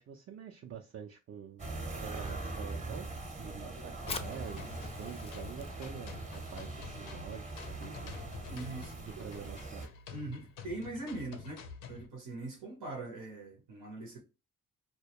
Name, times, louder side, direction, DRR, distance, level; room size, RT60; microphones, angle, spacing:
voice 1, 0.0-1.6 2.0-3.1 3.4-8.1 9.0-9.8, right 8 dB, 45° right, 0.4 m, -46 dB
sound 1, 1.6-9.9, right 2 dB, 25° right, 0.8 m, -42 dB
Fire, 3.9-11.2, left 4 dB, 20° left, 0.4 m, -50 dB
sound 2, 4.1-12.1, left 6 dB, 85° left, 0.6 m, -49 dB
voice 2, 8.5-9.3 10.1-14.2, right 2 dB, 90° right, 0.8 m, -42 dB
2.2 x 2.1 x 2.8 m
cardioid pair, 70°, 32 cm